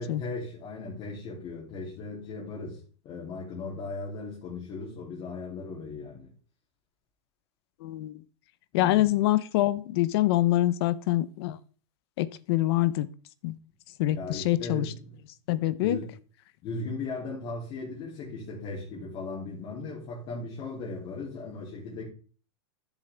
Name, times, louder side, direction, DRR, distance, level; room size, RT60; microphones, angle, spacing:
voice 1, 0.0-6.3 8.7-9.2 14.0-15.2 15.7-16.1 16.6-22.0, left 3 dB, 35° left, 2.9 m, -37 dB
voice 2, 7.8-8.2 8.7-11.6 12.2-13.1 13.4-13.6 14.0-14.9 15.5-16.0, left 15 dB, 55° left, 0.7 m, -25 dB
12.0 x 7.3 x 3.4 m
supercardioid pair, 155°, 15 cm